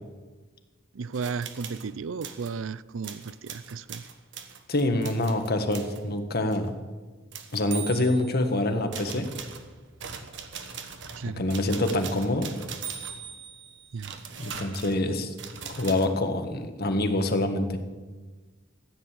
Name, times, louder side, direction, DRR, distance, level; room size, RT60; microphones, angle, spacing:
voice 1, 0.9-4.0 11.2-11.4 13.9-14.1, right 5 dB, 80° right, 18 dB, 0.5 m, -34 dB
sound 1, 1.1-1.9 2.2-2.5 3.0-6.0 6.5-6.7 7.3-8.5 8.9-16.1, right 7 dB, 65° right, 1.4 m, -40 dB
voice 2, 4.7-6.7 7.5-9.3 11.4-12.5 14.4-15.3 15.6-17.8, left 1 dB, 50° left, 6 dB, 1.6 m, -26 dB
14.5 x 9.4 x 7.5 m, 1.3 s
head